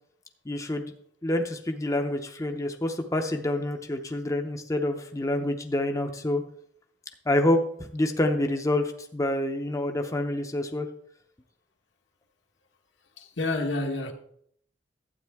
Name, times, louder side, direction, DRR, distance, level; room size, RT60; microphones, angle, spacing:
voice 1, 0.5-0.9 1.2-6.4 7.3-10.9, left 1 dB, 20° left, 0.7 m, -27 dB
voice 2, 13.2-14.1, left 2 dB, 70° left, 1.2 m, -29 dB
12.0 x 8.5 x 3.5 m
head